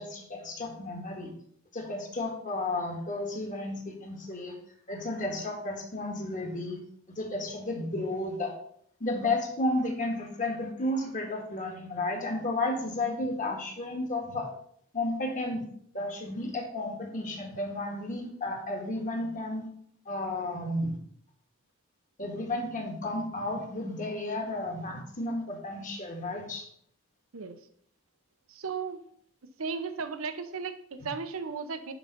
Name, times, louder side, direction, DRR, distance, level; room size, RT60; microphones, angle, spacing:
voice 1, 0.0-1.3 1.7-4.5 4.9-6.8 7.2-8.5 9.0-14.5 14.9-15.6 15.9-19.7 20.0-21.0 22.2-26.6, left 2 dB, 40° left, 2 dB, 1.7 m, -32 dB
voice 2, 28.5-29.0 29.6-31.9, right 5 dB, 75° right, 9 dB, 0.8 m, -35 dB
11.0 x 3.9 x 5.2 m, 0.67 s
head